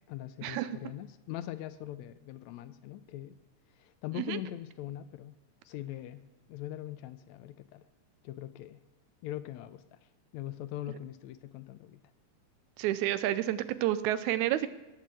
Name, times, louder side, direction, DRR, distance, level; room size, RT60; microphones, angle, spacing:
voice 1, 0.1-3.4 3.7-5.4 5.7-7.8 8.2-8.8 9.2-10.0 10.3-12.0, left 13 dB, 80° left, 13 dB, 1.8 m, -42 dB
voice 2, 12.8-14.7, right 13 dB, 80° right, 14 dB, 2.0 m, -30 dB
17.0 x 5.8 x 7.5 m, 1.1 s
omnidirectional pair, 3.4 m